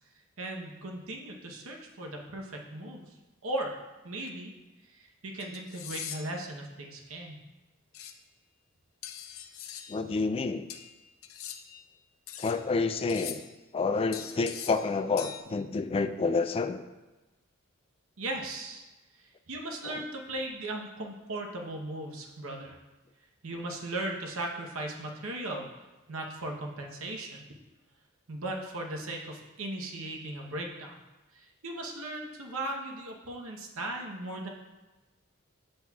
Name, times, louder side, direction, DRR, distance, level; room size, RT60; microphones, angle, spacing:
voice 1, 0.4-3.2 3.4-4.5 4.8-7.4 10.0-10.1 18.2-18.8 19.1-22.8 23.4-25.7 26.1-27.4 28.3-31.0 31.3-34.5, right 1 dB, 70° right, 1 dB, 0.9 m, -37 dB
sound 1, 4.2-4.3 5.4-6.4 7.9-8.1 9.0-10.0 10.7-11.8 12.3-12.6 13.1-13.6 14.1-14.9 15.2-15.4, left 9 dB, 75° left, 0.5 m, -42 dB
voice 2, 9.9-10.7 12.4-13.4 13.7-16.8 19.8-20.0, left 4 dB, 25° left, 9 dB, 0.3 m, -29 dB
7.8 x 7.2 x 2.3 m, 1.1 s
head